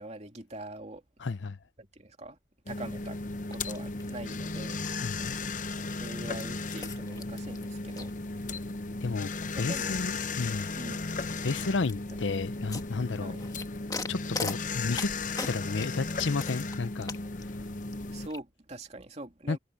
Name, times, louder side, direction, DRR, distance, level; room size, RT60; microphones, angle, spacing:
voice 1, 0.0-1.0 1.8-2.4 2.7-3.2 3.5-4.8 6.0-8.1 9.5-10.0 10.7-11.1 13.2-13.5 18.1-19.6, right 1 dB, 35° right, 2.8 m, -43 dB
voice 2, 1.2-1.6 5.0-5.4 9.0-10.7 11.4-13.3 14.1-15.1 15.5-17.1 19.5-19.6, left 4 dB, 80° left, 0.7 m, -32 dB
sound 1, 2.7-18.3, left 3 dB, 45° left, 0.9 m, -35 dB
sound 2, 3.5-18.4, left 4 dB, 20° left, 1.5 m, -44 dB
head